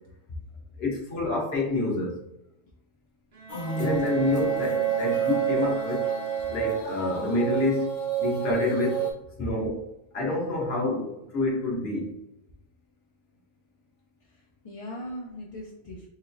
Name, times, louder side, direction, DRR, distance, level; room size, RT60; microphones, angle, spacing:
voice 1, 0.8-2.2 3.8-6.0 6.5-7.9 8.2-9.0 9.4-9.8 10.1-12.1, left 2 dB, 70° left, -1 dB, 1.2 m, -27 dB
Bowed string instrument, 3.3-7.3, right 3 dB, 45° right, 0.5 m, -39 dB
voice 2, 3.5-4.3 14.3-16.1, right 1 dB, 50° left, -2 dB, 0.4 m, -36 dB
sound 1, 3.5-9.1, right 10 dB, 20° left, 0.7 m, -29 dB
4.0 x 3.0 x 2.5 m, 0.86 s
omnidirectional pair, 1.1 m